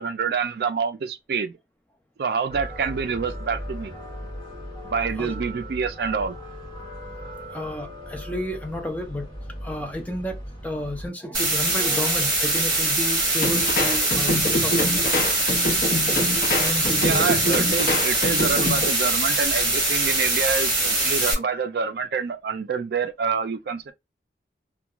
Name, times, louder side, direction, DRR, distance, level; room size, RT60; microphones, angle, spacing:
voice 1, 0.0-1.5 2.2-3.9 4.8-6.4 17.0-23.9, right 5 dB, 60° right, 0.3 m, -27 dB
sound 1, 2.5-11.1, equal, 25° left, 1.4 m, -37 dB
voice 2, 7.5-9.3 9.6-15.2 16.0-16.2 16.6-17.3 21.3-21.4, left 1 dB, 10° left, 0.4 m, -32 dB
sound 2, 11.3-21.3, right 2 dB, 25° right, 1.2 m, -23 dB
sound 3, 13.4-18.9, left 1 dB, 50° left, 0.7 m, -26 dB
2.3 x 2.2 x 2.9 m
head